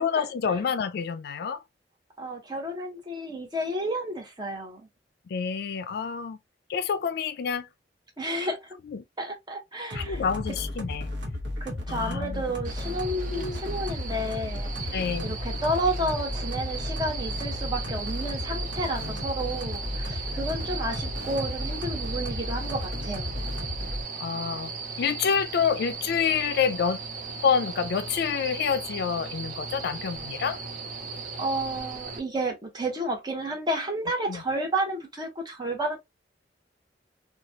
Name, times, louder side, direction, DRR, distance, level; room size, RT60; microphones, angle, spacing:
voice 1, 0.0-1.6 5.3-6.4 6.7-7.7 8.9-9.0 9.9-11.1 11.9-12.4 13.3-13.6 14.9-15.3 24.2-24.7 25.0-27.0 27.4-30.6 34.3-34.4, left 6 dB, 65° left, 0.4 m, -27 dB
voice 2, 2.2-4.8 8.2-8.7 9.2-10.2 11.6-23.5 31.4-36.0, right 1 dB, 25° right, 1.0 m, -31 dB
sound 1, 9.9-24.0, left 1 dB, 80° right, 1.0 m, -34 dB
sound 2, 12.6-32.2, right 4 dB, 50° right, 0.7 m, -37 dB
2.9 x 2.3 x 2.7 m
head